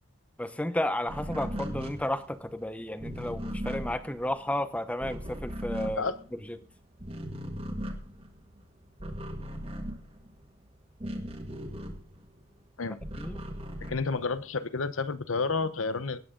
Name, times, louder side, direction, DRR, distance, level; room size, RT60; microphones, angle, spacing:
voice 1, 0.4-6.1 6.5-6.6 13.2-13.5, left 1 dB, 5° left, 12 dB, 0.8 m, -32 dB
sound 1, 1.1-6.7 6.9-12.4 12.7-14.6, equal, 30° right, 1.7 m, -38 dB
voice 2, 13.8-16.2, left 4 dB, 90° left, 14 dB, 0.9 m, -30 dB
18.5 x 8.9 x 3.8 m, 0.38 s
head